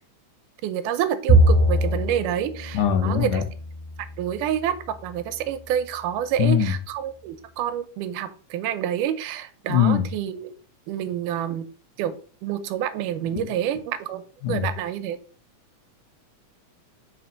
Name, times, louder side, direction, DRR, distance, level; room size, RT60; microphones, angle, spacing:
voice 1, 0.6-3.4 4.2-4.8 5.0-10.5 10.9-11.7 12.0-14.2 14.5-15.2, right 10 dB, 90° right, 11 dB, 2.2 m, -28 dB
Bowed string instrument, 1.3-4.8, right 1 dB, 55° left, 2.4 m, -22 dB
voice 2, 2.7-3.4 6.4-6.7 9.7-10.0 13.4-13.5 14.4-14.7, left 8 dB, 85° left, 4 dB, 2.3 m, -21 dB
5.0 x 4.2 x 5.0 m, 0.40 s
omnidirectional pair, 3.6 m